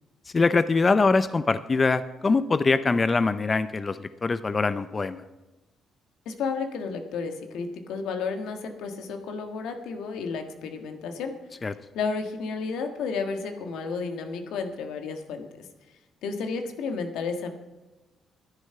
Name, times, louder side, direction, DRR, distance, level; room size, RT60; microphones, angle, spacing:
voice 1, 0.3-5.2 11.6-11.7, left 4 dB, 30° left, 13 dB, 0.5 m, -23 dB
voice 2, 6.2-11.4 11.9-15.6 16.2-17.5, left 5 dB, 85° left, 6 dB, 1.5 m, -32 dB
11.5 x 10.5 x 5.7 m, 1.1 s
cardioid pair, 90°, 0 cm